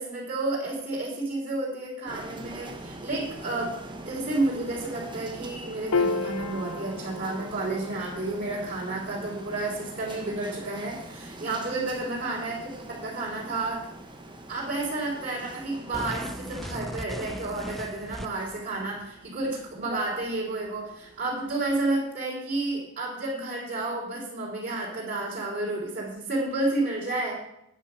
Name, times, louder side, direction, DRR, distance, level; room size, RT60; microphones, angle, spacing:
voice 1, 0.0-3.8 4.0-13.9 14.5-27.4, right 2 dB, 40° right, -8 dB, 3.8 m, -31 dB
sound 1, 2.1-21.8, right 2 dB, 20° right, 1.1 m, -44 dB
Piano, 5.9-12.5, left 4 dB, 80° left, 0.5 m, -35 dB
sound 2, 15.9-18.6, equal, ahead, 0.4 m, -37 dB
10.0 x 8.9 x 5.7 m, 0.81 s
head